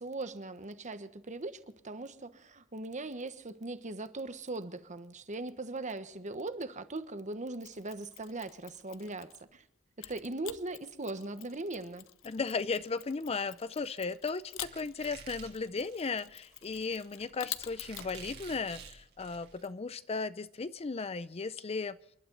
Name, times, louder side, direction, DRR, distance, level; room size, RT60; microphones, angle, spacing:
voice 1, 0.0-9.6 10.0-12.1, right 2 dB, 35° right, 1.2 m, -40 dB
Mechanisms, 7.6-9.5 10.0-18.1, left 13 dB, 65° left, 0.8 m, -48 dB
voice 2, 12.2-22.0, left 4 dB, 30° left, 0.5 m, -36 dB
Squeak, 14.6-19.7, right 5 dB, 50° right, 3.1 m, -50 dB
28.5 x 12.0 x 4.0 m
head